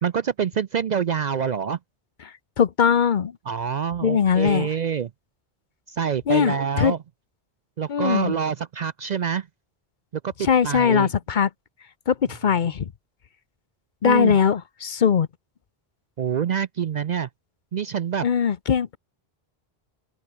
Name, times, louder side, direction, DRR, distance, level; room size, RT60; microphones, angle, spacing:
voice 1, 0.0-1.8 3.5-5.1 5.9-7.0 7.8-9.5 10.2-11.1 14.0-14.4 16.2-17.3 17.7-18.3, right 7 dB, 55° right, 0.5 m, -26 dB
voice 2, 2.6-3.3 4.0-4.7 6.3-6.9 7.9-8.4 10.4-11.5 12.1-12.9 14.0-15.3 18.2-19.0, left 7 dB, 50° left, 0.8 m, -20 dB
open air
omnidirectional pair, 1.1 m